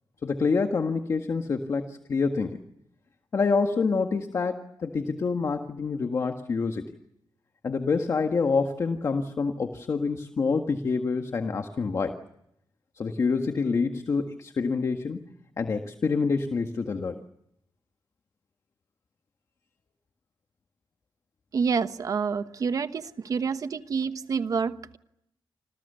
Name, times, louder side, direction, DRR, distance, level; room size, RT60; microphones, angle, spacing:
voice 1, 0.2-2.6 3.3-6.8 7.6-12.2 13.0-15.2 15.6-17.2, left 4 dB, 40° left, 5 dB, 1.7 m, -27 dB
voice 2, 21.5-25.0, right 5 dB, 45° right, 11 dB, 1.2 m, -28 dB
29.0 x 26.0 x 6.9 m, 0.80 s
wide cardioid pair, 175°, 8 cm